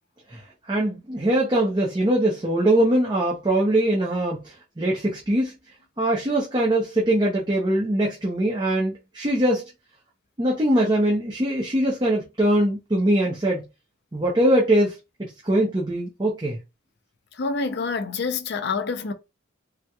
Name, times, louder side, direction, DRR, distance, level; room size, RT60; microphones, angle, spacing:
voice 1, 0.3-5.5 6.0-9.7 10.4-13.6 14.1-16.6, right 1 dB, 20° right, 0.6 m, -22 dB
voice 2, 17.3-19.1, left 4 dB, 55° left, 0.5 m, -27 dB
3.5 x 2.9 x 2.3 m
head